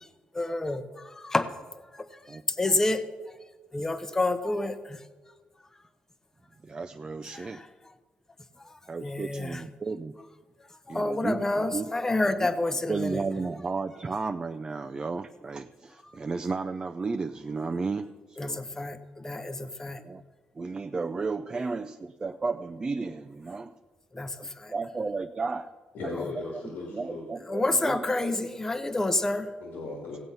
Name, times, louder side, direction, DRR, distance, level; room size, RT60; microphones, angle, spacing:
voice 1, 0.3-1.5 1.9-3.0 3.7-5.0 7.3-7.7 8.6-9.6 10.9-13.3 16.0-16.2 18.4-20.0 24.1-24.7 26.2-26.3 27.4-29.5, left 2 dB, 15° left, 0.8 m, -29 dB
voice 2, 6.6-7.6 8.9-10.1 10.9-11.9 12.4-12.5 12.9-18.6 20.0-20.2 20.6-23.7 24.4-25.7 26.0-26.1 26.5-26.6 26.9-28.0, right 4 dB, 25° right, 0.5 m, -33 dB
voice 3, 25.9-27.3 29.6-30.2, left 3 dB, 85° left, 2.2 m, -37 dB
16.5 x 7.9 x 5.6 m
cardioid pair, 100°, 3 cm